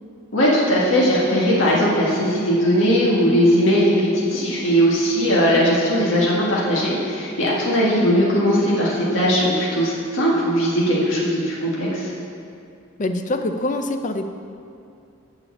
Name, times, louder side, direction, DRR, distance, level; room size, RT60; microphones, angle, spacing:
voice 1, 0.3-12.1, equal, 80° left, -5 dB, 1.6 m, -19 dB
voice 2, 13.0-14.3, left 2 dB, 40° left, 7 dB, 0.5 m, -24 dB
7.0 x 6.9 x 7.1 m, 2.4 s
head